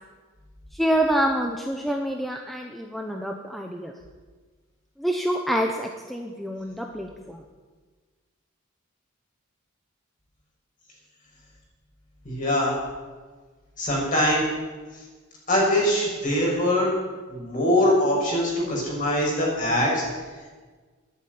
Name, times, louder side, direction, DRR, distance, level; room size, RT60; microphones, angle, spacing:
voice 1, 0.7-3.9 5.0-7.4 18.3-18.4, right 1 dB, ahead, 2 dB, 0.9 m, -27 dB
voice 2, 12.2-12.7 13.8-14.5 15.5-16.9 17.3-20.0, left 1 dB, 40° left, -3 dB, 6.3 m, -22 dB
13.0 x 11.5 x 9.4 m, 1.4 s
head